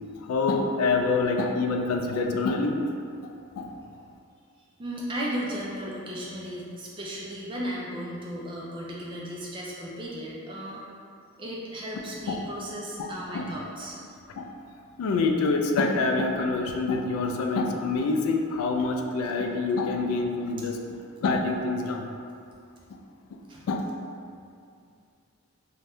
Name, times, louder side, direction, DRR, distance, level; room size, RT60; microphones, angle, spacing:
voice 1, 0.2-2.8 3.6-3.7 12.3-12.4 13.0-13.5 14.4-14.5 15.0-22.1 23.7-23.9, left 3 dB, 80° left, 5 dB, 0.3 m, -26 dB
voice 2, 4.8-10.9 11.4-14.0 23.5-23.6, equal, 20° right, -4 dB, 0.3 m, -35 dB
2.6 x 2.2 x 3.4 m, 2.4 s
head